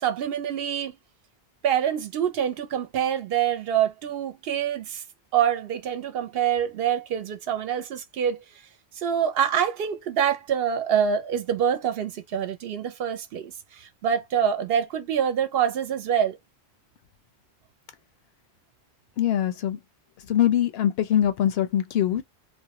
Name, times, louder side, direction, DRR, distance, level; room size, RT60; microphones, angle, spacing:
voice 1, 0.0-1.0 1.6-5.0 5.3-8.4 9.0-16.4, right 9 dB, 70° right, 0.7 m, -25 dB
voice 2, 19.2-19.8 20.3-22.2, left 11 dB, 70° left, 0.8 m, -23 dB
2.4 x 2.1 x 2.8 m
omnidirectional pair, 1.1 m